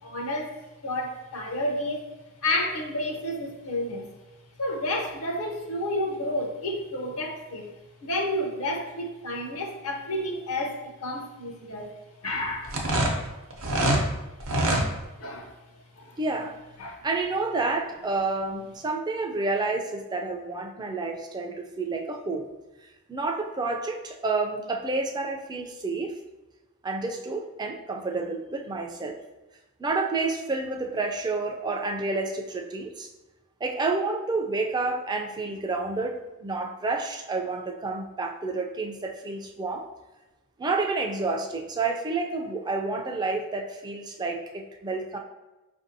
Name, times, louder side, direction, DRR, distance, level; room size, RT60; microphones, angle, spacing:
voice 1, 0.0-0.6 0.8-2.1 2.4-4.1 4.6-7.8 8.0-11.9 12.2-12.8 15.2-15.5 16.0-16.2 16.8-17.0, left 1 dB, 65° left, 2 dB, 0.6 m, -30 dB
sound 1, 12.6-14.0 14.4-14.9, right 1 dB, 65° right, 0.7 m, -24 dB
voice 2, 16.2-16.6 17.0-22.5 23.1-26.1 26.8-29.2 29.8-33.1 33.6-39.8 40.6-45.2, right 3 dB, 20° right, 2 dB, 0.3 m, -29 dB
4.9 x 2.6 x 2.6 m, 1.1 s
head